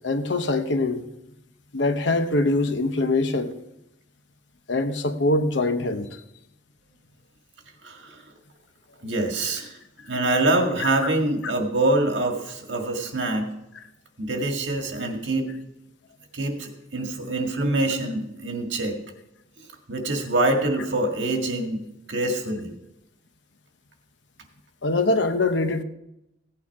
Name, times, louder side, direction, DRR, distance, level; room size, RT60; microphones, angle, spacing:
voice 1, 0.0-1.0 1.7-3.6 4.7-6.1 10.8-11.1 24.8-25.8, left 2 dB, 65° left, 0.9 m, -23 dB
voice 2, 7.8-8.2 9.0-9.7 10.1-13.5 14.2-15.5 16.3-19.0 19.9-21.8 22.1-22.7, right 2 dB, 65° right, 1.9 m, -25 dB
16.0 x 8.7 x 4.7 m
head